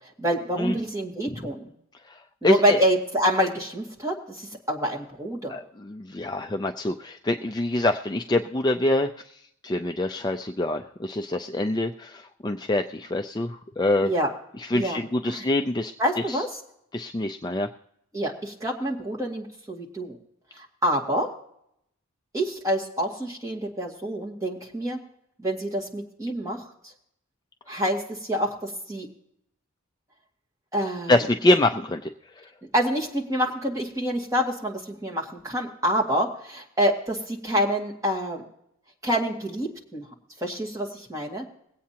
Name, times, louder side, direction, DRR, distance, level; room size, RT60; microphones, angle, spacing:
voice 1, 0.2-1.6 2.4-5.6 14.0-14.3 14.7-15.5 16.0-16.6 18.1-20.2 20.8-21.3 22.3-25.0 25.4-26.6 27.7-29.1 30.7-31.2 32.7-38.4 39.0-40.0 40.4-41.5, equal, 15° right, -3 dB, 1.9 m, -27 dB
voice 2, 2.4-2.8 5.5-9.1 9.6-14.1 14.7-15.9 16.3-16.4 16.9-17.7 31.1-32.1, left 1 dB, 20° left, 6 dB, 0.4 m, -25 dB
22.0 x 8.5 x 2.9 m, 0.75 s
head